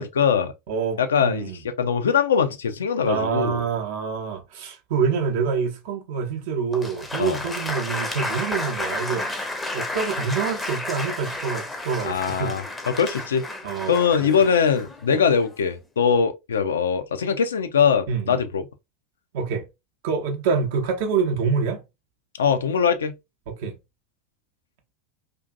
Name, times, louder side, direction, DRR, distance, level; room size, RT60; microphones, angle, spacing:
voice 1, 0.0-0.5 1.0-3.6 7.2-7.4 12.0-13.4 13.9-18.7 22.4-23.2, left 6 dB, 70° left, 0.3 m, -22 dB
voice 2, 0.7-1.6 3.1-9.4 9.7-12.6 13.6-14.3 15.1-15.2 18.1-18.4 19.3-19.7 20.0-21.8 23.5-23.7, right 6 dB, 55° right, 0.6 m, -26 dB
Applause, 6.7-15.7, left 2 dB, 10° left, 0.5 m, -32 dB
2.6 x 2.4 x 2.3 m
figure-of-eight pair, 80°, 0 cm